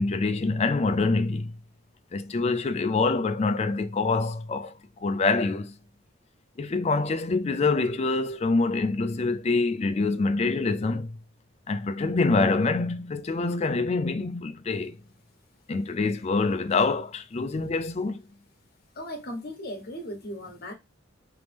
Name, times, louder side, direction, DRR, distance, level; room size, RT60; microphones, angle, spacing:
voice 1, 0.0-1.6 2.1-5.7 6.6-11.1 11.7-15.0 15.7-18.2, left 3 dB, 35° left, 0.4 m, -25 dB
voice 2, 18.9-20.7, equal, 50° left, 1.3 m, -37 dB
3.9 x 3.3 x 3.4 m
head